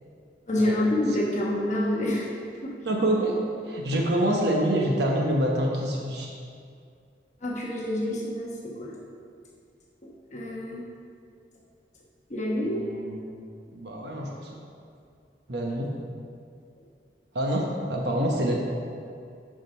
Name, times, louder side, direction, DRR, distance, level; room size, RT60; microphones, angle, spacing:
voice 1, 0.5-2.3 2.6-2.8 3.9-4.0 7.4-9.0 10.0-10.8 12.3-12.8, left 1 dB, 40° left, -3 dB, 1.1 m, -28 dB
voice 2, 2.8-3.4 3.7-6.3 12.6-13.2 13.7-14.5 15.5-15.9 17.3-18.5, right 1 dB, 60° right, -1 dB, 1.0 m, -26 dB
9.3 x 5.2 x 5.6 m, 2.3 s
head